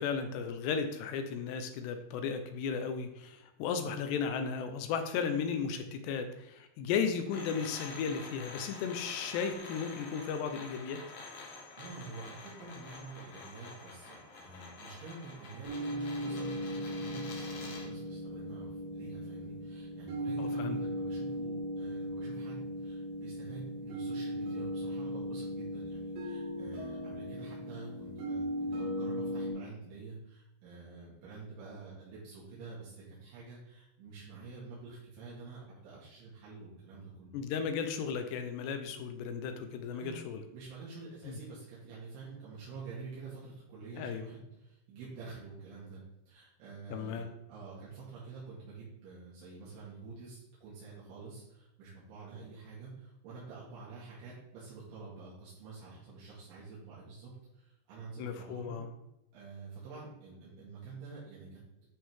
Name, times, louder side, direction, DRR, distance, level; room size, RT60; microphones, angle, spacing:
voice 1, 0.0-11.0 20.4-20.8 37.3-40.4 41.2-41.4 44.0-44.3 46.9-47.3 58.2-58.9, left 6 dB, 75° left, 7 dB, 2.7 m, -35 dB
sound 1, 7.3-17.9, left 3 dB, 60° left, 2.1 m, -48 dB
voice 2, 11.8-37.4 40.0-40.2 40.5-58.8 59.3-61.6, right 4 dB, 80° right, -8 dB, 4.6 m, -48 dB
sound 2, 15.6-29.5, equal, 60° right, 3.6 m, -37 dB
10.0 x 5.7 x 3.7 m, 0.89 s
omnidirectional pair, 5.4 m